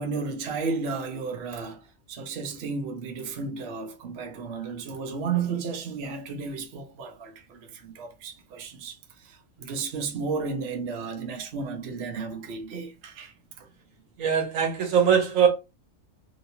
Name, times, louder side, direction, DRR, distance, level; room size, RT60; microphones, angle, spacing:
voice 1, 0.0-13.7, right 5 dB, 60° right, 0.9 m, -33 dB
voice 2, 14.2-15.5, right 7 dB, 85° right, 1.4 m, -21 dB
3.1 x 2.8 x 2.7 m
omnidirectional pair, 1.4 m